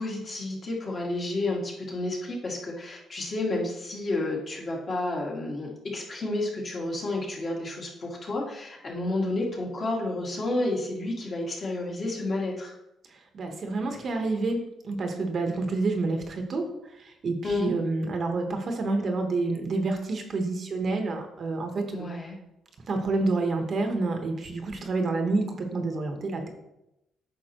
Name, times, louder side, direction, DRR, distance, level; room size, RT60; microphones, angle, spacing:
voice 1, 0.0-12.7 17.4-17.7 21.9-22.4, left 2 dB, 40° left, -3 dB, 2.1 m, -30 dB
voice 2, 13.1-22.1 22.8-26.5, right 3 dB, 45° right, 4 dB, 1.1 m, -28 dB
8.8 x 5.7 x 3.0 m, 0.87 s
cardioid pair, 125°, 0 cm